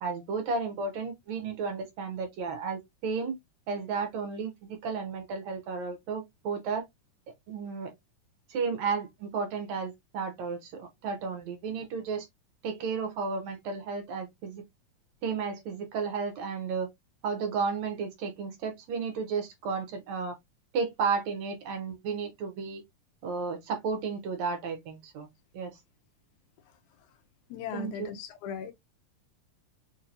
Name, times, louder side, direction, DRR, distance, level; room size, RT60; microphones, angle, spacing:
voice 1, 0.0-3.4 3.7-6.8 7.5-7.9 8.5-12.3 12.6-14.6 15.2-16.9 17.2-20.4 20.7-22.8 23.2-25.3 25.5-25.7 27.7-28.1, right 5 dB, 70° right, 1.9 m, -33 dB
voice 2, 27.5-28.7, left 8 dB, 80° left, 2.0 m, -38 dB
5.0 x 2.7 x 2.5 m
omnidirectional pair, 3.6 m